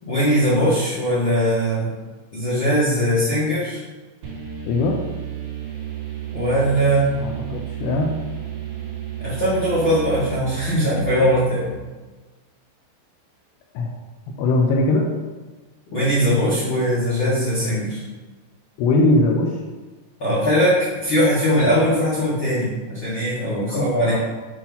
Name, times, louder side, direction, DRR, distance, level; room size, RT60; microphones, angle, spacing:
voice 1, 0.0-1.9 2.3-3.8 6.3-7.2 9.2-11.7 15.9-18.0 20.2-24.2, equal, 70° left, -10 dB, 1.2 m, -20 dB
sound 1, 4.2-11.9, right 10 dB, 65° right, 3.7 m, -33 dB
voice 2, 4.7-5.0 7.2-8.2 13.7-13.9 14.4-15.1 18.8-19.6 23.7-24.2, left 2 dB, 90° left, 0 dB, 2.3 m, -20 dB
8.5 x 3.0 x 5.4 m, 1.3 s
omnidirectional pair, 5.4 m